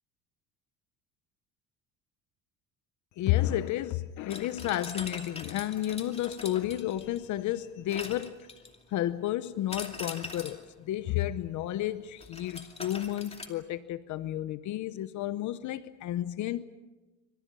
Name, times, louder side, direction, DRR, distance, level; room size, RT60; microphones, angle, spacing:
voice 1, 3.2-8.5 8.9-16.6, left 13 dB, 60° left, 0.9 m, -32 dB
sound 1, 4.3-7.3 7.9-8.9 9.7-10.7 12.2-13.5, left 3 dB, 20° left, 2.6 m, -42 dB
27.5 x 26.0 x 5.5 m
cardioid pair, 135°, 34 cm